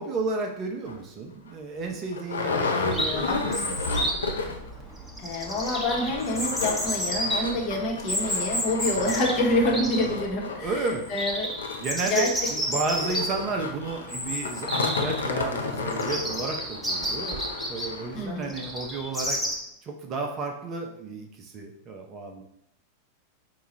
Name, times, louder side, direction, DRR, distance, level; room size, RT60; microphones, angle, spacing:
voice 1, 0.0-4.1 10.6-11.1 11.8-19.4 19.8-22.4, right 3 dB, 30° right, 2 dB, 0.6 m, -32 dB
sound 1, 0.9-1.0 1.5-1.6 1.8-4.7 5.0-5.1 5.4-18.2 18.8-18.9 19.2-19.3, left 4 dB, 70° left, 0.5 m, -32 dB
Chirp tweet, 2.9-19.6, equal, ahead, 0.9 m, -32 dB
voice 2, 5.2-11.5 12.0-12.3 18.1-18.5, left 1 dB, 40° left, -1 dB, 1.0 m, -27 dB
4.7 x 2.3 x 4.1 m, 0.75 s
figure-of-eight pair, 90°, 0 cm